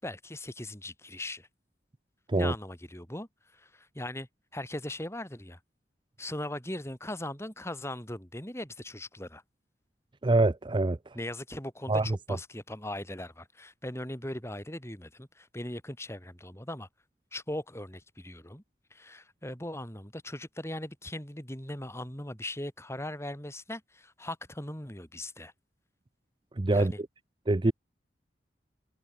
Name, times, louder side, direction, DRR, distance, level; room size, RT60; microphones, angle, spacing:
voice 1, 0.0-1.5 2.3-5.6 6.2-9.4 11.1-16.9 17.3-18.6 18.9-25.5 26.7-27.0, left 1 dB, 15° left, 5.6 m, -39 dB
voice 2, 10.2-11.0 11.9-12.1 26.6-26.9 27.5-27.7, right 2 dB, 25° right, 0.6 m, -24 dB
head